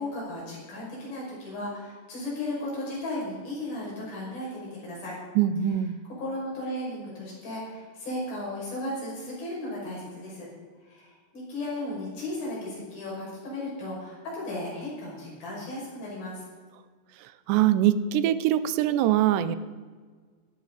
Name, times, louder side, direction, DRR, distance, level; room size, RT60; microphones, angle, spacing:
voice 1, 0.0-5.2 6.2-10.5 10.9-16.4, left 1 dB, 60° left, -5 dB, 7.5 m, -35 dB
voice 2, 5.4-6.0 17.2-19.6, right 11 dB, 85° right, 13 dB, 2.8 m, -23 dB
17.0 x 14.5 x 4.0 m, 1.5 s
omnidirectional pair, 4.8 m